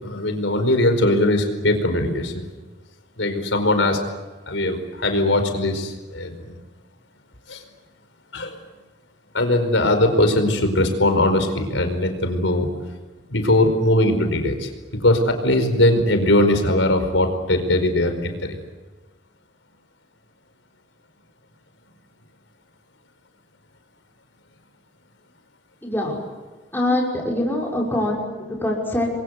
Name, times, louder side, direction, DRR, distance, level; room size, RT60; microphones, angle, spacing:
voice 1, 0.0-2.4 3.2-4.0 4.5-6.6 7.5-7.6 8.3-8.6 9.3-12.7 13.3-18.6, left 1 dB, 85° left, 6 dB, 4.8 m, -20 dB
voice 2, 25.8-26.2 26.7-29.0, left 1 dB, 10° left, -3 dB, 6.2 m, -24 dB
30.0 x 23.0 x 8.2 m, 1.2 s
head